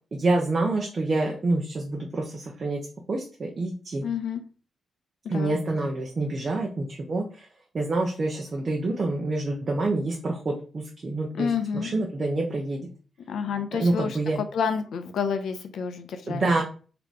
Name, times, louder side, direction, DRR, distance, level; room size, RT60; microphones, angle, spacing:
voice 1, 0.1-2.8 3.1-4.0 5.3-7.5 7.7-12.9 13.8-14.4 16.3-16.6, right 2 dB, 35° right, 0 dB, 0.7 m, -27 dB
voice 2, 4.0-4.4 5.2-5.5 11.3-11.9 13.3-14.2 14.5-16.5, left 6 dB, 80° left, 8 dB, 0.6 m, -29 dB
4.0 x 2.8 x 4.6 m, 0.38 s
wide cardioid pair, 155°, 0 cm